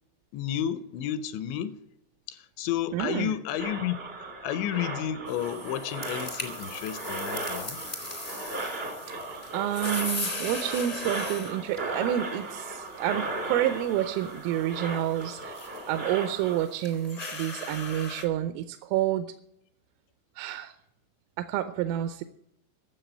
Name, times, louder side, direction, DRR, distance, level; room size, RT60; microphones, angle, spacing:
voice 1, 0.3-1.8 2.3-7.8, left 10 dB, 80° left, 2.8 m, -32 dB
voice 2, 2.9-3.3 9.1-9.2 9.5-19.3 20.4-20.7 21.4-22.2, right 12 dB, 85° right, 3.2 m, -29 dB
sound 1, 3.6-16.7, right 2 dB, 55° right, 0.6 m, -37 dB
sound 2, 5.3-18.2, left 2 dB, 50° left, 0.6 m, -40 dB
13.5 x 7.4 x 8.9 m
omnidirectional pair, 5.7 m